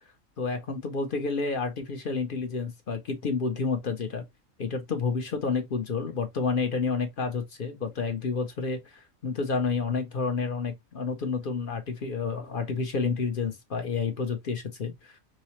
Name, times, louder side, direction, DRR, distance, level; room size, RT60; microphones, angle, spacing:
voice 1, 0.4-4.2 4.6-15.2, left 4 dB, 55° left, 0.7 m, -30 dB
4.7 x 2.0 x 2.8 m
omnidirectional pair, 1.3 m